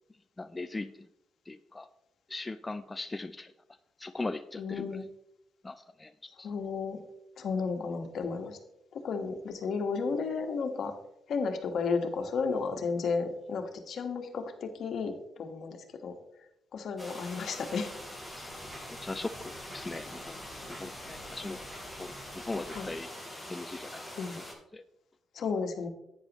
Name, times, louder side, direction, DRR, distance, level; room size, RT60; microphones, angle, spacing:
voice 1, 0.4-1.1 1.5-1.9 2.3-3.5 4.0-5.0 5.6-6.5 18.4-18.5 18.9-20.4 20.8-21.6 22.0-23.1 23.5-24.1 24.3-24.4 24.7-24.8, left 2 dB, 20° left, 9 dB, 0.4 m, -39 dB
voice 2, 4.6-5.1 6.4-7.0 7.4-8.6 8.9-10.9 11.3-15.8 16.0-16.1 16.7-17.9 22.7-22.9 24.2-24.4 25.3-25.9, left 5 dB, 65° left, 6 dB, 1.4 m, -33 dB
sound 1, 17.0-24.5, left 1 dB, 5° right, 3.8 m, -44 dB
sound 2, 17.4-23.0, right 1 dB, 40° right, 4.1 m, -52 dB
11.0 x 9.1 x 3.0 m, 0.85 s
cardioid pair, 90°, 0 cm